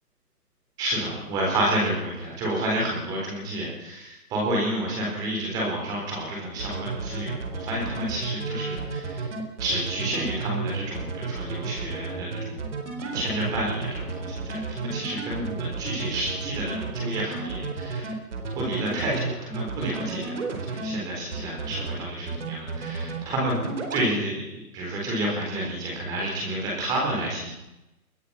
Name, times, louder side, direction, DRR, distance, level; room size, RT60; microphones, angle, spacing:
voice 1, 0.8-9.3 9.6-12.6 13.0-18.1 18.5-20.3 20.6-23.5 23.9-27.5, right 1 dB, 10° right, -2 dB, 4.1 m, -30 dB
sound 1, 6.6-20.9 21.3-22.0 22.3-23.2 23.5-24.0, right 4 dB, 50° right, 4.9 m, -32 dB
24.5 x 21.0 x 5.8 m, 0.92 s
hypercardioid pair, 180°, 47 cm